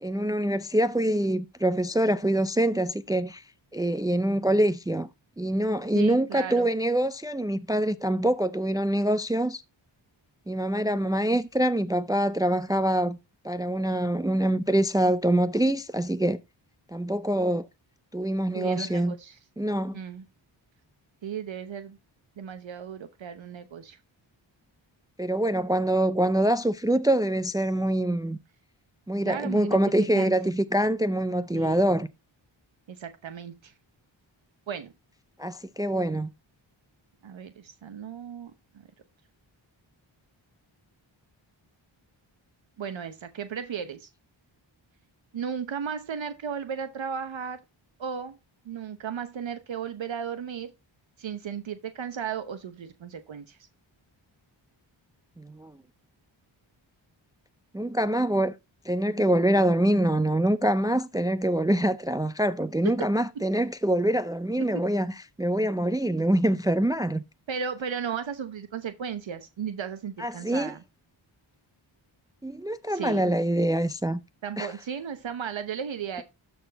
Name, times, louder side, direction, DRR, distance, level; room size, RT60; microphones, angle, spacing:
voice 1, 0.0-3.4 3.7-5.1 5.4-9.6 10.5-13.2 13.4-16.4 16.9-17.7 18.1-19.2 19.6-20.0 25.2-28.4 29.1-32.1 35.4-36.3 55.4-55.8 57.7-58.5 58.9-67.2 70.2-70.8 72.4-74.2 74.6-74.8, right 1 dB, 10° right, 0.4 m, -25 dB
voice 2, 5.9-6.7 18.5-19.4 19.9-20.3 21.2-22.0 22.4-24.0 29.2-30.3 31.5-31.8 32.9-33.7 34.7-34.9 37.2-38.5 42.8-44.1 45.3-47.6 48.0-48.4 48.6-50.7 51.2-53.6 63.4-63.5 64.7-64.8 67.5-70.8 72.9-73.3 74.4-76.2, right 7 dB, 70° right, 1.0 m, -35 dB
12.5 x 4.5 x 4.0 m
cardioid pair, 55°, 48 cm